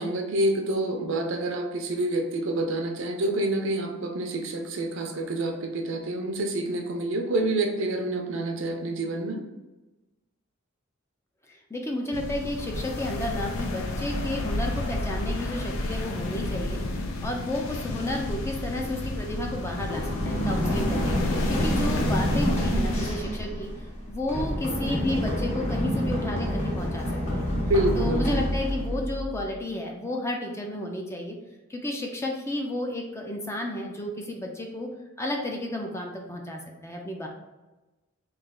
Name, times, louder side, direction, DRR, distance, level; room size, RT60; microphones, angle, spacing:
voice 1, 0.0-9.4 27.5-28.3, right 1 dB, 65° right, 3 dB, 0.6 m, -27 dB
voice 2, 11.5-16.8 17.2-23.7 24.1-27.5 28.0-31.4 31.7-34.9 35.2-37.3, left 1 dB, 15° left, 1 dB, 0.4 m, -32 dB
sound 1, 12.1-23.2, left 2 dB, 80° left, 0.5 m, -31 dB
Run, 19.8-29.6, equal, 35° left, 0.8 m, -28 dB
3.2 x 2.8 x 3.7 m, 1.1 s
head